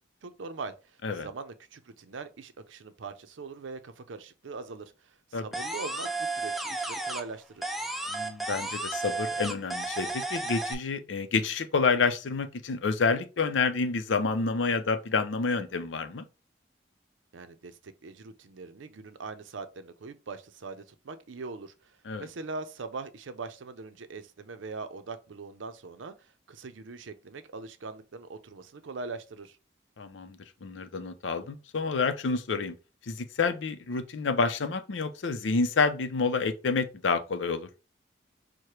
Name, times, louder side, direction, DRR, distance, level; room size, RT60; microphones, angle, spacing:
voice 1, 0.2-7.7 17.3-29.6, right 4 dB, 90° right, 0.6 m, -42 dB
sound 1, 5.5-7.3 7.6-10.7, right 2 dB, ahead, 0.4 m, -33 dB
voice 2, 8.1-16.2 22.1-22.3 30.0-32.7 33.1-37.7, left 4 dB, 80° left, 0.5 m, -28 dB
4.8 x 2.1 x 4.3 m
head